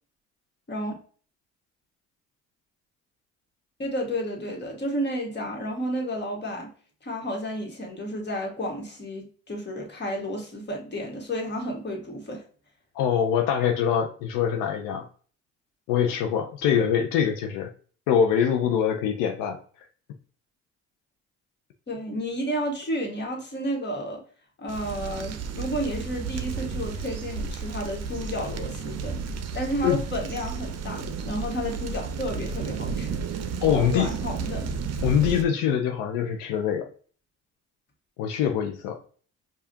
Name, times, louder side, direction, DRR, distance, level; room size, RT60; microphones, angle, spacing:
voice 1, 3.8-6.7 7.0-12.4 21.9-24.2 24.6-29.2 29.5-33.2 33.7-34.7, equal, 35° left, 1.5 m, -31 dB
voice 2, 12.9-15.0 15.9-17.7 18.1-19.6 29.8-30.0 33.6-34.1 35.0-36.9 38.2-39.0, left 8 dB, 90° left, 0.5 m, -24 dB
sound 1, 24.7-35.4, right 5 dB, 55° right, 0.6 m, -32 dB
4.8 x 2.4 x 2.7 m
supercardioid pair, 60°, 32 cm